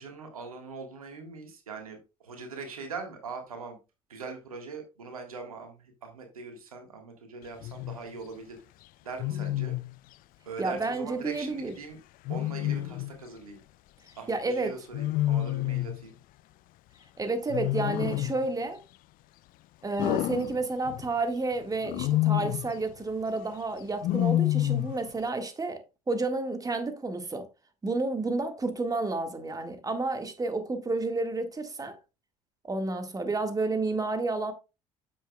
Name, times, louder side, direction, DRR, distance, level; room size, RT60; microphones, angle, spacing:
voice 1, 0.0-2.0 2.2-3.8 4.1-8.6 9.0-9.7 10.5-12.0 12.3-13.6 14.2-16.2, right 4 dB, 90° right, 1.6 m, -41 dB
Wild animals, 7.6-8.0 9.2-9.9 12.2-13.2 14.9-16.0 17.5-18.5 20.0-21.1 21.8-22.7 24.0-25.0, left 15 dB, 50° left, 0.4 m, -28 dB
voice 2, 10.6-11.7 14.3-14.7 17.2-18.8 19.8-27.5 27.8-32.0 32.6-34.5, right 3 dB, 20° right, 1.7 m, -30 dB
9.5 x 7.3 x 2.3 m
hypercardioid pair, 65°, 18 cm